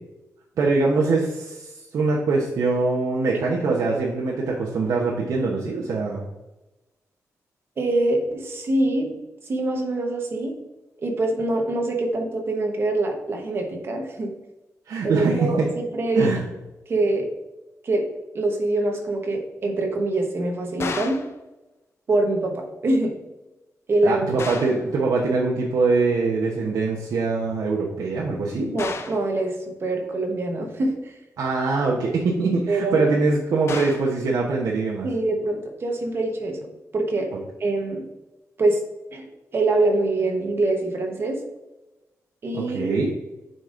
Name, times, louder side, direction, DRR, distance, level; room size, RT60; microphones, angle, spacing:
voice 1, 0.6-6.3 14.9-15.7 16.2-16.4 24.0-28.7 31.4-35.1 37.3-37.4 42.5-43.1, right 3 dB, 80° right, -3 dB, 0.9 m, -23 dB
voice 2, 7.8-9.2 9.5-10.6 11.0-14.3 15.0-15.6 15.9-16.3 16.9-17.3 17.8-18.0 18.3-21.2 22.1-23.1 23.9-24.5 28.6-29.6 29.8-31.1 32.7-33.2 35.0-36.6 36.9-37.3 37.6-38.0 38.6-38.8 39.1-41.4 42.4-42.9, right 2 dB, 40° right, 2 dB, 1.1 m, -24 dB
sound 1, 20.8-21.3 24.4-24.9 28.8-29.3 33.7-34.1, left 5 dB, 45° left, 0.5 m, -32 dB
7.6 x 5.3 x 2.5 m, 1.0 s
wide cardioid pair, 180°, 6 cm